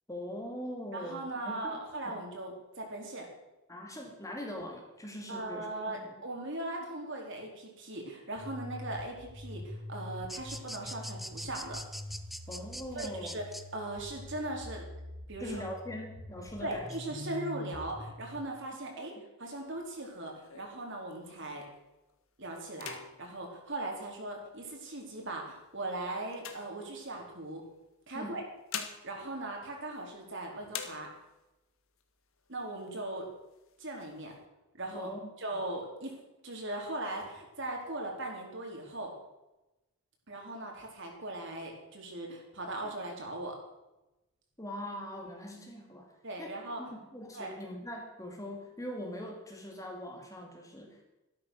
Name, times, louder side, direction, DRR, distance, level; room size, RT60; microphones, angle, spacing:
voice 1, 0.1-1.8 2.1-2.2 3.7-6.1 12.5-13.3 15.4-16.9 19.2-19.3 28.1-28.4 34.9-35.3 42.8-42.9 44.6-46.1 46.4-51.0, equal, 15° left, 2 dB, 2.3 m, -42 dB
voice 2, 0.9-3.3 5.3-11.8 12.9-13.4 13.7-14.8 15.3-15.6 16.6-19.1 19.4-21.6 22.4-27.6 28.1-28.4 29.0-31.1 32.5-33.3 33.8-34.3 34.7-35.1 35.4-39.1 40.3-43.6 46.2-46.8 47.3-47.5, right 2 dB, 55° right, 0 dB, 4.0 m, -39 dB
sound 1, 8.4-18.4, left 1 dB, 80° right, 3.7 m, -45 dB
sound 2, 10.3-13.6, equal, ahead, 0.6 m, -42 dB
sound 3, 19.4-21.6 22.1-22.3 22.7-24.6 25.3-27.4 28.3-30.3 30.7-31.5 32.0-32.1 32.3-33.0 33.5-34.4, left 7 dB, 65° left, 1.8 m, -46 dB
13.5 x 12.5 x 6.4 m, 0.98 s
head